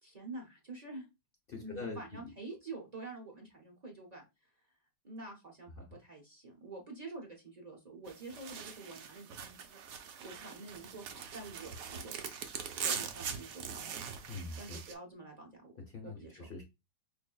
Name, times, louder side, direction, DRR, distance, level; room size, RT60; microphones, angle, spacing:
voice 1, 0.0-1.1 1.6-4.5 5.0-9.8 10.2-12.1 12.7-13.8 14.6-15.7 16.0-16.4, right 2 dB, 35° right, 0.6 m, -47 dB
voice 2, 1.5-2.3 5.8-5.9 14.3-14.8 15.9-16.6, left 3 dB, 50° left, 0.7 m, -44 dB
sound 1, 8.1-14.9, right 7 dB, 70° right, 0.8 m, -42 dB
5.4 x 2.5 x 2.3 m
omnidirectional pair, 2.0 m